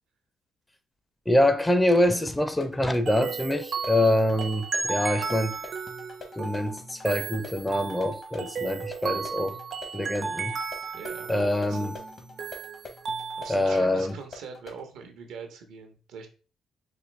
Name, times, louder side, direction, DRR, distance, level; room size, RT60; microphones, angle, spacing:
voice 1, 1.3-5.6 6.4-9.6 9.9-10.5 11.3-11.9 13.5-14.1, left 1 dB, 10° left, 0.4 m, -25 dB
sound 1, 2.3-14.9, left 3 dB, 50° left, 0.9 m, -46 dB
sound 2, 3.1-13.7, right 5 dB, 55° right, 0.6 m, -34 dB
voice 2, 10.9-12.0 13.4-16.3, right 5 dB, 90° right, 0.8 m, -42 dB
4.1 x 2.6 x 3.2 m
cardioid pair, 90°, 0 cm